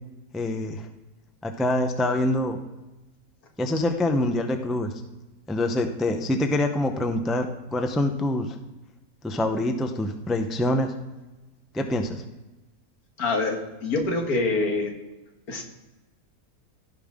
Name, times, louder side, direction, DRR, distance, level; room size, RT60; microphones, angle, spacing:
voice 1, 0.3-0.9 1.4-2.6 3.6-4.9 5.5-8.6 9.2-10.9 11.7-12.2, left 1 dB, ahead, 5 dB, 0.4 m, -25 dB
voice 2, 13.2-14.9 15.5-15.6, left 3 dB, 85° left, 2 dB, 2.0 m, -25 dB
16.0 x 5.5 x 3.7 m, 1.1 s
omnidirectional pair, 1.6 m